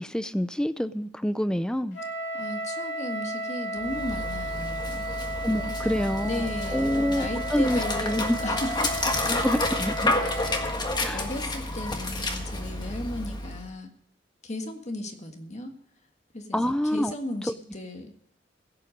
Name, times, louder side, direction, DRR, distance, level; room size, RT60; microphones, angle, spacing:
voice 1, 0.0-2.0 5.4-6.4 6.7-8.4 9.3-10.1 11.0-11.2 16.5-17.1, equal, 5° left, 0.5 m, -27 dB
Wind instrument woodwind instrument, 1.9-10.8, right 1 dB, 75° left, 3.7 m, -34 dB
voice 2, 2.3-5.1 5.7-8.9 10.2-10.7 11.0-13.9 14.4-15.8 16.3-18.1, left 1 dB, 40° left, 1.6 m, -35 dB
Dog, 3.8-13.7, left 2 dB, 25° left, 1.6 m, -30 dB
16.0 x 8.0 x 5.2 m
head